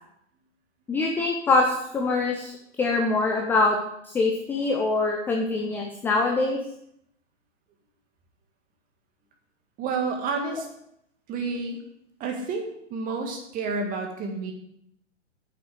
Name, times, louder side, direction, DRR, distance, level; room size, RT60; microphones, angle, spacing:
voice 1, 0.9-2.5 2.8-3.8 4.0-6.6, left 3 dB, 5° left, 1 dB, 0.5 m, -24 dB
voice 2, 9.8-10.7 11.3-11.8 12.2-14.5, right 4 dB, 20° right, 3 dB, 1.9 m, -30 dB
9.0 x 6.9 x 6.3 m, 0.75 s
figure-of-eight pair, 120°, 37 cm